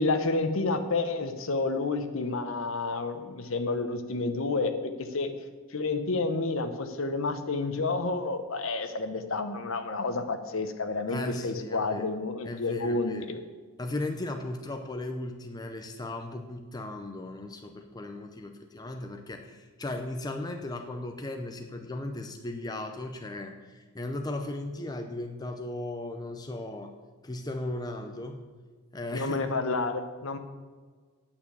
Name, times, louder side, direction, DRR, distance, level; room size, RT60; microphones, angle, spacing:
voice 1, 0.0-5.3 5.7-13.4 29.1-30.4, left 3 dB, 60° left, 8 dB, 0.9 m, -30 dB
voice 2, 11.1-12.1 12.4-13.3 13.8-26.9 27.2-28.4 28.9-29.5, left 2 dB, 15° left, 5 dB, 0.6 m, -36 dB
8.7 x 6.7 x 8.5 m, 1.5 s
head